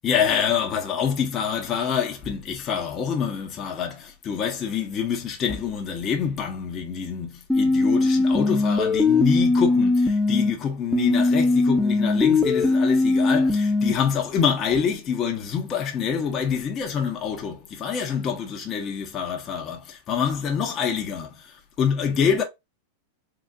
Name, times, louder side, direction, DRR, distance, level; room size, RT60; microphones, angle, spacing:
voice 1, 0.0-22.4, left 7 dB, 30° left, 0.8 m, -26 dB
sound 1, 7.5-10.5 10.9-13.9, left 3 dB, ahead, 0.8 m, -20 dB
3.8 x 2.5 x 2.3 m
hypercardioid pair, 120°, 0 cm